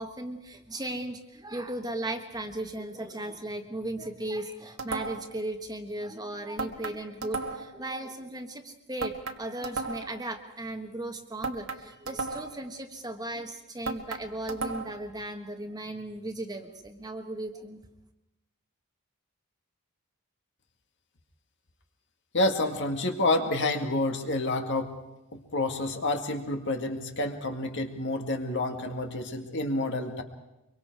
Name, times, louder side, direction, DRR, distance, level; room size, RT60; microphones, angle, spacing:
voice 1, 0.0-17.8, right 1 dB, 15° right, 5 dB, 1.3 m, -36 dB
sound 1, 4.8-5.4 6.6-7.8 9.0-10.2 11.4-12.7 13.9-15.1, right 3 dB, 70° right, 1.6 m, -35 dB
voice 2, 22.3-24.9 25.3-30.2, left 2 dB, 55° left, 4 dB, 2.1 m, -29 dB
24.5 x 23.5 x 4.8 m, 0.95 s
head